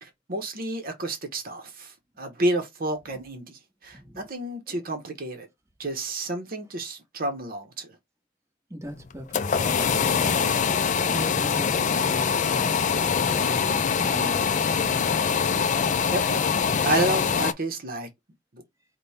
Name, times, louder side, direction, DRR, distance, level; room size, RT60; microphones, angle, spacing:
voice 1, 0.0-5.5 5.8-7.9 16.1-18.1 18.5-18.6, right 1 dB, 50° right, 1.0 m, -30 dB
voice 2, 3.9-4.3 4.7-4.8 8.7-15.2, equal, 15° right, 1.1 m, -40 dB
sound 1, 9.0-17.5, left 6 dB, 40° left, 0.4 m, -24 dB
5.2 x 2.3 x 4.1 m
head